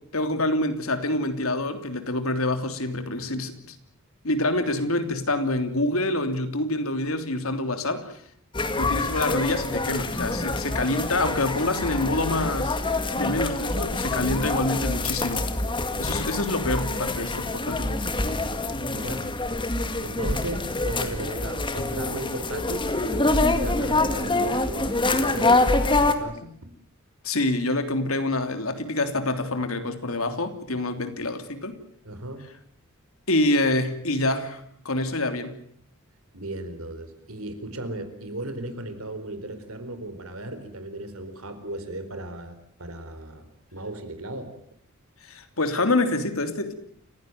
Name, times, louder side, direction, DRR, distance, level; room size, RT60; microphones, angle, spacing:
voice 1, 0.1-3.7 4.2-8.2 8.8-12.8 13.1-15.4 16.0-17.9 27.2-31.8 33.3-35.6 45.3-46.7, left 2 dB, 75° left, 8 dB, 3.2 m, -26 dB
sound 1, 8.5-26.1, left 2 dB, 25° left, 2.1 m, -26 dB
voice 2, 18.9-19.3 20.0-22.9 23.4-26.7 32.0-32.5 36.3-43.4 43.7-44.5, right 1 dB, 80° right, 9 dB, 4.4 m, -36 dB
29.0 x 16.0 x 9.2 m, 0.67 s
head